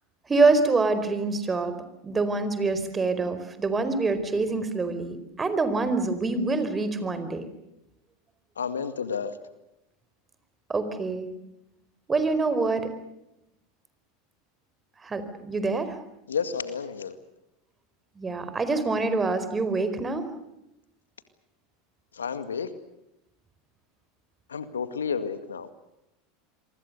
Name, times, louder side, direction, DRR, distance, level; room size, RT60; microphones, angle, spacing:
voice 1, 0.3-1.7 2.0-7.4 10.7-11.3 12.1-12.9 15.0-16.0 18.2-20.3, right 3 dB, 20° right, 11 dB, 4.6 m, -25 dB
voice 2, 8.6-9.3 16.3-17.2 22.1-22.7 24.5-25.7, left 6 dB, 85° left, 11 dB, 2.0 m, -31 dB
27.5 x 24.0 x 6.8 m, 0.87 s
hypercardioid pair, 85°, 0 cm